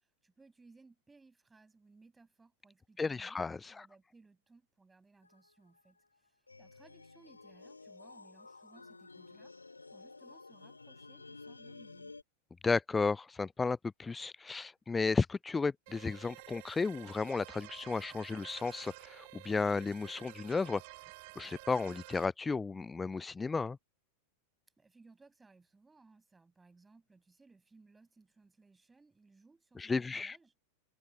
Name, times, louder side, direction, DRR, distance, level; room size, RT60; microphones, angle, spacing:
voice 1, 0.0-3.4 3.7-12.1 24.8-30.5, right 3 dB, 10° right, 7.9 m, -63 dB
voice 2, 3.0-3.7 12.6-20.8 21.4-23.8 29.8-30.4, left 4 dB, 15° left, 0.4 m, -33 dB
sound 1, 5.2-5.5 5.8-6.0 6.5-12.2, left 3 dB, 80° left, 4.4 m, -53 dB
sound 2, 15.9-22.3, right 25 dB, 50° right, 3.4 m, -51 dB
open air
figure-of-eight pair, 90°, 0 cm